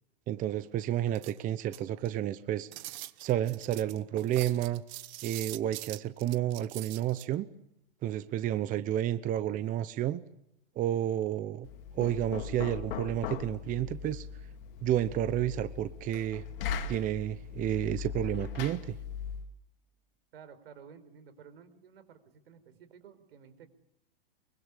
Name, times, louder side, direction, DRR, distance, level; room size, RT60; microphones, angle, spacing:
voice 1, 0.3-2.7 3.2-4.8 5.2-7.5 8.0-10.2 10.8-11.7 11.9-14.3 14.8-16.4 16.9-18.9, right 12 dB, 25° right, 14 dB, 0.9 m, -31 dB
sound 1, 1.1-2.2 2.7-7.3, right 19 dB, 50° right, 1.2 m, -43 dB
Knock, 11.6-19.5, left 7 dB, 65° left, 2.9 m, -39 dB
voice 2, 20.3-23.7, right 7 dB, 75° right, 12 dB, 4.7 m, -53 dB
24.5 x 24.0 x 8.4 m, 0.80 s
hypercardioid pair, 130°, 30 cm